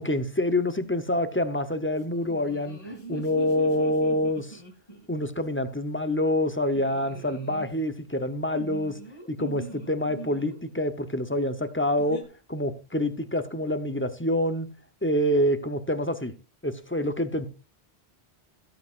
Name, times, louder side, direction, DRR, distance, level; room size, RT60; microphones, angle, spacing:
voice 1, 0.0-4.6 5.1-9.0 9.3-12.2 12.5-14.7 15.0-16.3 16.6-17.5, left 1 dB, 10° left, 0.7 m, -26 dB
sound 1, 2.1-5.1 6.6-7.7 8.5-10.6 12.0-12.2, right 1 dB, 30° left, 2.5 m, -41 dB
17.0 x 8.3 x 2.5 m
omnidirectional pair, 1.1 m